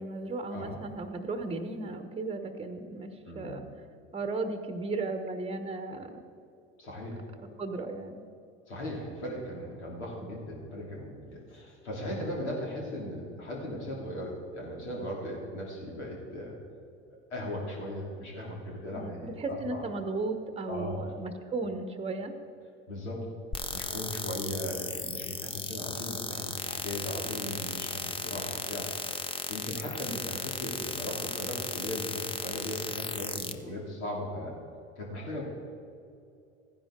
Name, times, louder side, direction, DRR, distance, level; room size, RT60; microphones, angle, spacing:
voice 1, 0.0-3.6 4.1-6.2 7.6-8.2 18.9-22.3, right 3 dB, 15° right, 8 dB, 1.1 m, -35 dB
voice 2, 3.2-3.6 6.8-7.3 8.7-16.5 17.3-19.8 20.7-21.0 22.9-23.2 23.7-28.9 29.5-34.6 35.0-35.4, left 1 dB, 75° left, -2 dB, 3.2 m, -38 dB
sound 1, 23.5-33.5, left 4 dB, 15° left, 0.7 m, -36 dB
15.0 x 10.5 x 3.8 m, 2.5 s
hypercardioid pair, 70°, 34 cm